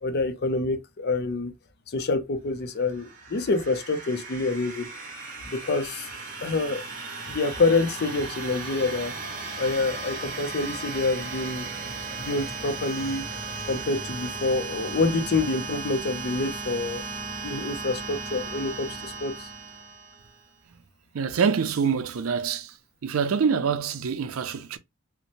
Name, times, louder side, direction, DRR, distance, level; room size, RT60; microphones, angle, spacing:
voice 1, 0.0-1.5 1.9-4.9 5.5-6.1 6.4-6.8 7.3-9.1 9.6-11.7 12.2-13.2 13.7-17.1 17.4-19.5, left 3 dB, 50° left, 0.5 m, -27 dB
sound 1, 2.8-20.4, right 4 dB, 45° right, 1.0 m, -36 dB
voice 2, 21.1-22.8 23.0-24.8, right 6 dB, 85° right, 0.5 m, -25 dB
2.9 x 2.1 x 2.5 m
head